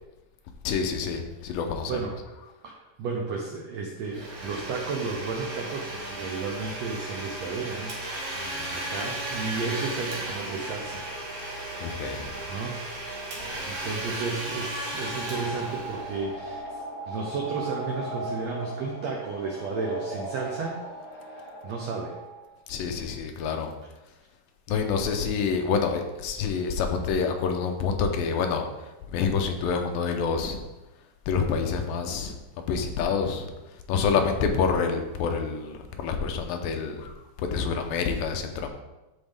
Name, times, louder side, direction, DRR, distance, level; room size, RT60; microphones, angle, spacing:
voice 1, 0.6-2.0 8.1-8.7 11.8-12.4 22.7-23.7 24.7-30.6 31.3-32.4 32.7-33.5 33.9-37.1 37.4-38.7, left 5 dB, 80° left, 4 dB, 2.5 m, -27 dB
voice 2, 2.6-11.1 12.5-12.8 13.2-20.8 21.1-22.2, right 4 dB, 80° right, 0 dB, 1.5 m, -33 dB
Domestic sounds home sounds, 4.0-16.6, right 1 dB, 55° right, 2.1 m, -35 dB
sound 1, 14.8-22.5, right 1 dB, 65° left, 1.2 m, -38 dB
13.0 x 4.4 x 3.5 m, 1.1 s
omnidirectional pair, 4.1 m